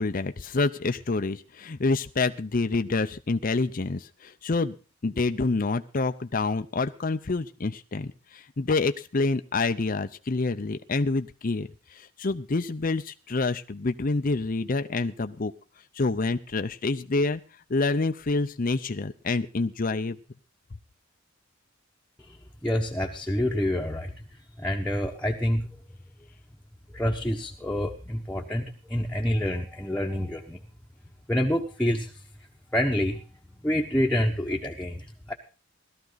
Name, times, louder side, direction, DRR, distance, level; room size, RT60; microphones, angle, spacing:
voice 1, 0.0-4.7 5.0-15.5 15.9-17.4 17.7-20.2, left 3 dB, 45° left, 8 dB, 0.6 m, -27 dB
voice 2, 22.6-24.2 24.6-25.7 26.9-30.6 31.3-32.1 32.7-33.2 33.6-35.3, equal, 5° left, -1 dB, 1.1 m, -27 dB
17.5 x 13.0 x 4.0 m, 0.34 s
head